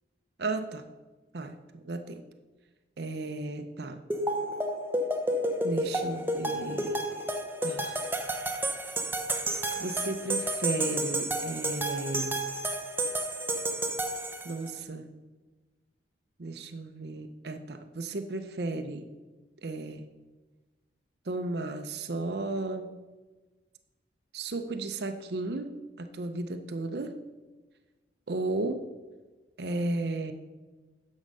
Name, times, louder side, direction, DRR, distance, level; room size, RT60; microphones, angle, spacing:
voice 1, 0.4-0.8 1.3-2.2 3.0-4.0 5.6-7.0 7.6-8.0 9.8-12.4 14.4-15.0 16.4-19.1 19.6-20.0 21.3-22.9 24.3-27.2 28.3-28.9 29.6-30.3, right 2 dB, 60° right, 7 dB, 0.6 m, -34 dB
sound 1, 4.1-14.7, right 1 dB, 10° right, 0.7 m, -31 dB
9.7 x 6.3 x 5.4 m, 1.2 s
head